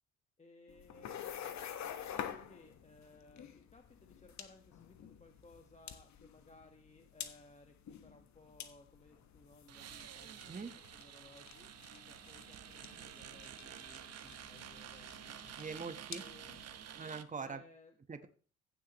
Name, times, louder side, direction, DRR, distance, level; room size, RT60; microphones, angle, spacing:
voice 1, 0.4-1.6 2.0-10.4 10.9-11.7 12.1-15.4 16.2-16.6 17.4-18.0, left 2 dB, 20° left, 4 dB, 1.4 m, -61 dB
sound 1, 0.7-16.9, left 9 dB, 55° left, 1.4 m, -49 dB
sound 2, 9.7-17.2, right 9 dB, 50° right, 1.0 m, -50 dB
voice 2, 15.6-16.2 17.0-17.6 18.1-18.3, right 5 dB, 25° right, 9 dB, 1.2 m, -43 dB
15.5 x 7.4 x 3.1 m, 0.40 s
hypercardioid pair, 60°, 33 cm